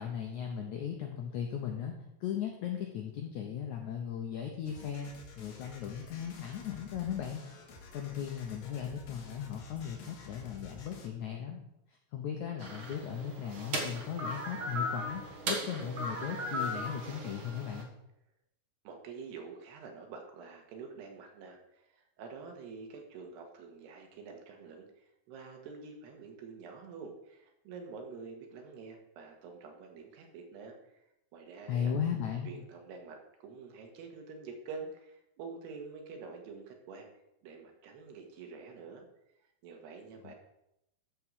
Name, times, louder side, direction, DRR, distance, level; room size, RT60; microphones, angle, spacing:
voice 1, 0.0-1.9 2.2-7.4 7.9-11.6 12.1-17.9 31.7-32.5 40.2-40.3, left 8 dB, 80° left, 2 dB, 1.7 m, -37 dB
sound 1, 4.6-11.1, left 4 dB, 65° left, 3.0 m, -51 dB
sound 2, 12.6-17.8, equal, 60° right, 1.3 m, -37 dB
voice 2, 18.9-31.0 31.3-31.9 32.5-37.1 37.4-39.1 39.6-40.3, right 4 dB, 85° right, 3 dB, 3.6 m, -47 dB
13.5 x 4.7 x 6.3 m, 0.83 s
omnidirectional pair, 4.7 m